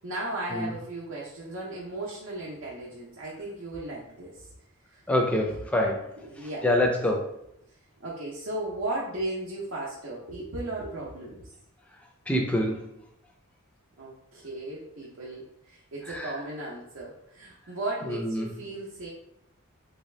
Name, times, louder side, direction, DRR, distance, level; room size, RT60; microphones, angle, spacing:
voice 1, 0.0-4.5 4.9-5.0 6.2-6.7 8.0-11.5 14.0-19.1, right 2 dB, 70° right, -5 dB, 0.7 m, -36 dB
voice 2, 5.1-7.3 12.3-12.8 16.1-16.3 18.0-18.5, left 1 dB, 5° left, 1 dB, 0.4 m, -26 dB
3.3 x 2.7 x 3.2 m, 0.77 s
head